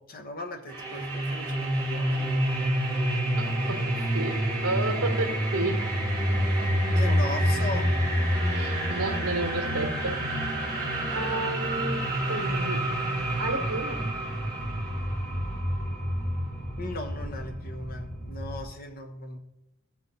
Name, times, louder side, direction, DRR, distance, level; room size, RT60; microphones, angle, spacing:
voice 1, 0.0-2.3 6.9-7.9 10.6-11.1 16.8-19.4, left 1 dB, 45° left, 5 dB, 1.1 m, -38 dB
sound 1, 0.7-18.6, equal, 10° left, 3.2 m, -28 dB
voice 2, 3.1-5.9 8.5-10.3 10.8-12.9 13.4-14.1, right 2 dB, 80° right, 5 dB, 1.4 m, -32 dB
sound 2, 6.6-11.5, right 1 dB, 40° right, 1.6 m, -42 dB
13.5 x 5.9 x 4.0 m, 0.93 s
head